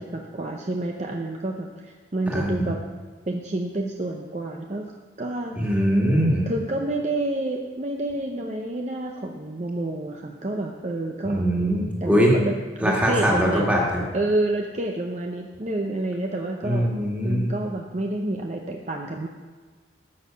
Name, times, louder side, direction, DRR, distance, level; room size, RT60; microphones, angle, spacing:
voice 1, 0.0-2.8 3.3-4.9 5.2-5.6 6.4-11.5 12.0-13.6 14.1-16.9 17.2-19.3, right 2 dB, 35° right, 1 dB, 0.6 m, -29 dB
voice 2, 2.3-2.7 5.5-6.5 11.2-12.3 12.8-14.0 16.6-17.5, equal, 5° right, -3 dB, 1.8 m, -22 dB
13.5 x 6.4 x 5.7 m, 1.4 s
head